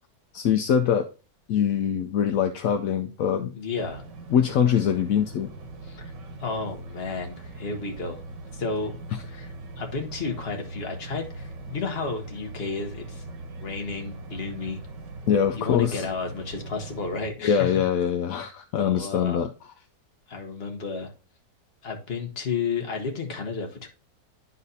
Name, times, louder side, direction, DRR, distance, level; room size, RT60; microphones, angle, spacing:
voice 1, 0.3-1.0 1.5-3.5 4.3-5.5 15.3-16.0 17.4-19.5, left 8 dB, 70° left, 7 dB, 0.8 m, -23 dB
voice 2, 3.5-4.0 5.8-6.1 6.4-8.2 8.5-8.9 9.2-13.2 13.6-14.8 15.5-17.8 18.8-19.4 20.3-21.1 21.8-23.9, left 4 dB, 40° left, 3 dB, 1.3 m, -32 dB
sound 1, 3.8-17.3, right 2 dB, 80° right, 1.7 m, -41 dB
11.0 x 4.1 x 2.7 m, 0.33 s
omnidirectional pair, 1.9 m